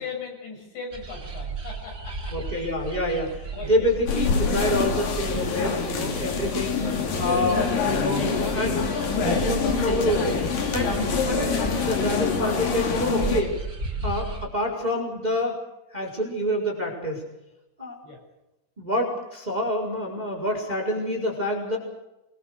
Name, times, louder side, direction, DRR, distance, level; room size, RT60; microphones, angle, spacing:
voice 1, 0.0-2.4 3.1-3.9 6.5-6.9 18.0-18.2, left 4 dB, 70° left, 1 dB, 9.1 m, -39 dB
sound 1, 0.9-14.5, right 4 dB, 30° right, 2.4 m, -35 dB
voice 2, 2.3-6.7 7.2-8.8 9.2-10.4 10.7-11.0 11.3-13.5 14.0-15.6 15.9-17.2 17.8-18.0 18.8-21.8, left 1 dB, 10° right, 1 dB, 4.5 m, -27 dB
sound 2, 4.1-13.4, left 5 dB, 50° left, 4.1 m, -26 dB
26.0 x 22.0 x 6.8 m, 0.94 s
omnidirectional pair, 5.4 m